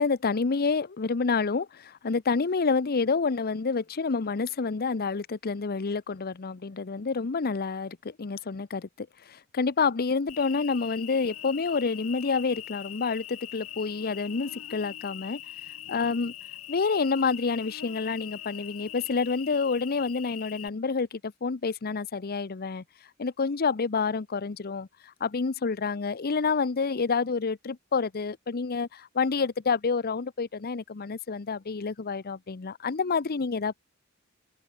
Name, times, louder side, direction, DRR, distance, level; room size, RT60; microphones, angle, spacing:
voice 1, 0.0-15.4 15.9-16.3 16.7-22.8 23.2-33.8, left 4 dB, 45° left, 0.7 m, -28 dB
Cricket, 10.3-20.7, left 12 dB, 80° left, 1.6 m, -42 dB
head